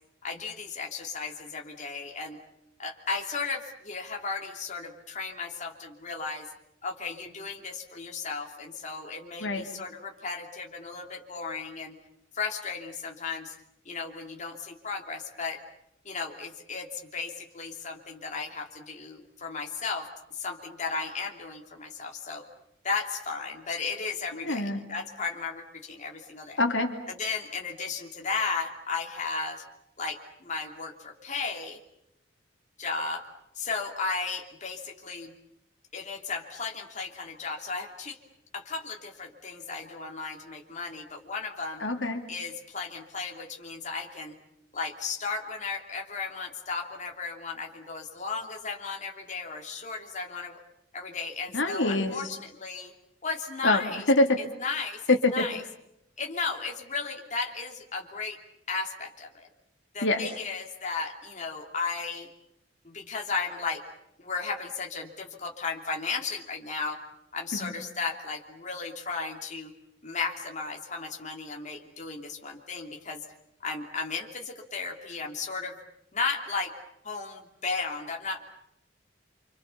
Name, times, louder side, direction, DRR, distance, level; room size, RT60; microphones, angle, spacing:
voice 1, 0.2-2.4 2.8-6.5 6.8-12.0 12.3-13.5 13.8-15.6 16.0-22.4 22.8-26.6 27.1-29.6 30.0-31.8 32.8-33.2 33.5-35.3 35.9-38.2 38.5-41.8 42.3-44.3 44.7-50.6 50.9-52.9 53.2-54.1 54.6-55.6 56.2-58.4 58.7-59.5 59.9-62.3 62.8-63.8 64.2-67.0 67.3-69.7 70.0-73.2 73.6-75.8 76.1-76.7 77.0-78.4, left 4 dB, 40° left, 1 dB, 2.9 m, -35 dB
voice 2, 24.4-24.8 26.6-26.9 41.8-42.2 51.5-52.1 53.6-53.8 54.1-54.4 55.1-55.4 60.0-60.2 67.6-67.7, left 2 dB, 80° left, 4 dB, 2.8 m, -24 dB
29.0 x 26.0 x 7.0 m, 0.81 s
head